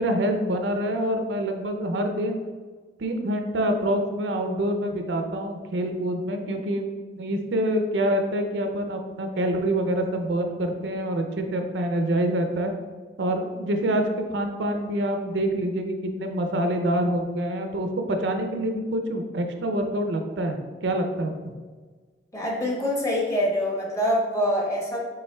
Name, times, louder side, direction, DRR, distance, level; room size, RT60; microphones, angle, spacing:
voice 1, 0.0-2.4 3.0-12.7 13.2-21.5, right 1 dB, 75° right, 5 dB, 0.5 m, -26 dB
voice 2, 22.3-25.0, equal, 20° left, -2 dB, 0.8 m, -25 dB
5.4 x 3.7 x 2.2 m, 1.4 s
head